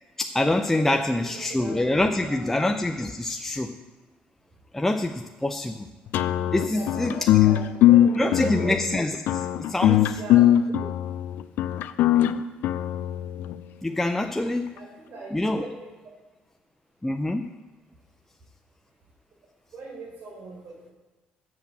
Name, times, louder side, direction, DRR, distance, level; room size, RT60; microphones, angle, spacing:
voice 1, 0.2-3.8 4.7-5.9 6.5-7.3 8.2-10.2 10.8-10.9 13.8-14.7 15.3-15.7 17.0-17.5, left 1 dB, 10° left, 5 dB, 0.5 m, -26 dB
voice 2, 0.7-2.4 6.7-8.8 10.2-10.4 14.7-15.9 19.7-20.9, right 3 dB, 65° right, 0 dB, 3.9 m, -40 dB
sound 1, 6.1-13.5, left 12 dB, 75° left, 0.4 m, -21 dB
7.8 x 7.2 x 7.3 m, 1.2 s
cardioid pair, 85°, 3 cm